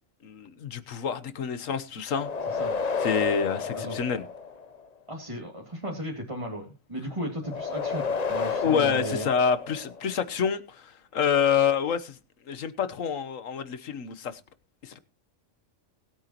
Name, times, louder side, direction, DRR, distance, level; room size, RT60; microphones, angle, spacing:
voice 1, 0.2-2.6 3.0-4.2 8.6-12.2 12.5-14.4 14.8-15.0, left 7 dB, 80° left, 1.4 m, -27 dB
sound 1, 2.1-4.8 7.4-10.2, left 5 dB, 35° left, 0.8 m, -31 dB
voice 2, 2.5-2.8 3.7-4.0 5.1-9.3, equal, 25° right, 2.4 m, -35 dB
20.5 x 9.0 x 3.0 m
omnidirectional pair, 1.4 m